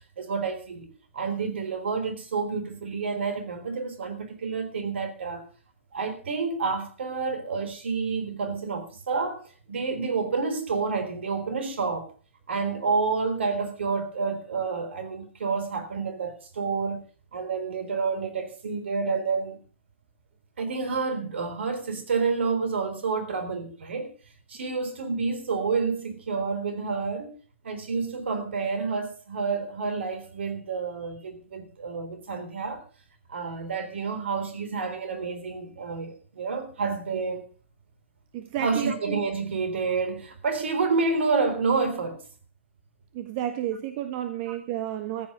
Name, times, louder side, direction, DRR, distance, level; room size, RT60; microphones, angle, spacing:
voice 1, 0.2-5.4 5.9-9.4 9.7-12.1 12.5-17.0 17.3-19.6 20.6-24.1 24.5-27.3 27.6-32.8 33.3-37.5 38.6-42.2, right 4 dB, 70° right, 3.6 m, -29 dB
voice 2, 38.3-38.9 43.1-45.3, right 12 dB, 45° right, 1.5 m, -31 dB
14.5 x 9.5 x 6.4 m
hypercardioid pair, 115°, 7 cm